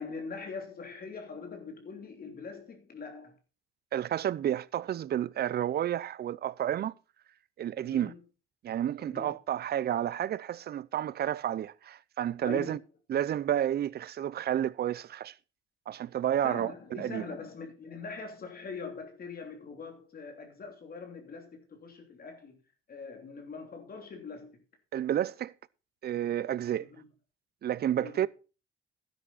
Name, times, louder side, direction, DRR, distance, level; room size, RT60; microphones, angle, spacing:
voice 1, 0.0-3.4 7.8-8.2 9.0-9.4 12.4-12.8 16.4-22.6 22.9-24.6 26.8-27.1 28.0-28.3, left 4 dB, 50° left, 3.0 m, -43 dB
voice 2, 3.9-6.9 7.6-8.1 8.6-12.8 13.1-15.3 15.9-17.3 24.9-25.5 26.0-26.9 27.6-28.3, right 11 dB, 55° right, 0.6 m, -31 dB
12.5 x 10.5 x 4.1 m
cardioid pair, 90°, 20 cm